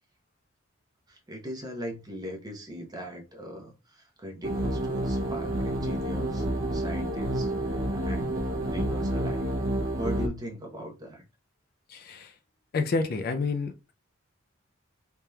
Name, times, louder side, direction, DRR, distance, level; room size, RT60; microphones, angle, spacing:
voice 1, 1.1-6.5 6.7-9.5 10.0-11.2, equal, 20° right, 0.9 m, -39 dB
sound 1, 4.4-10.3, right 1 dB, 75° right, 0.7 m, -29 dB
voice 2, 11.9-12.3 12.7-13.9, left 3 dB, 50° left, 0.4 m, -29 dB
3.4 x 2.9 x 2.3 m
head